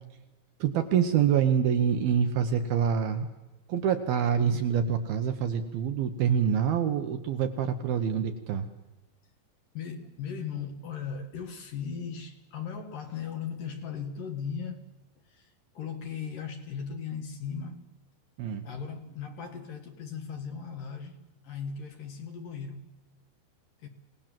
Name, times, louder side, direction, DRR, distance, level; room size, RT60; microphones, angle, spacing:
voice 1, 0.6-3.3 3.7-8.7 18.4-18.6, right 8 dB, 70° right, 2.5 m, -26 dB
voice 2, 9.7-14.8 15.2-17.9 18.4-22.8 23.8-23.9, left 6 dB, 60° left, 2.6 m, -38 dB
27.5 x 18.5 x 7.5 m
omnidirectional pair, 5.2 m